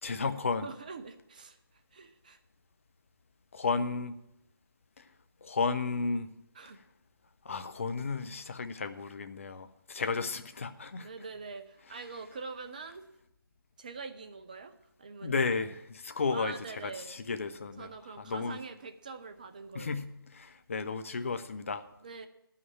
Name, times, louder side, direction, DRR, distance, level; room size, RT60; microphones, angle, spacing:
voice 1, 0.0-0.7 3.5-4.2 5.0-5.1 5.4-6.3 7.4-11.1 15.2-16.5 16.8-17.9 18.2-18.6 19.7-21.8, left 4 dB, 35° left, 10 dB, 0.7 m, -33 dB
voice 2, 0.6-1.6 1.9-2.4 6.5-6.8 11.0-13.0 13.8-14.7 15.0-15.3 16.3-17.1 17.8-20.0 22.0-22.3, right 4 dB, 20° right, 8 dB, 0.5 m, -44 dB
11.0 x 5.8 x 8.8 m, 0.84 s
figure-of-eight pair, 155°, 12 cm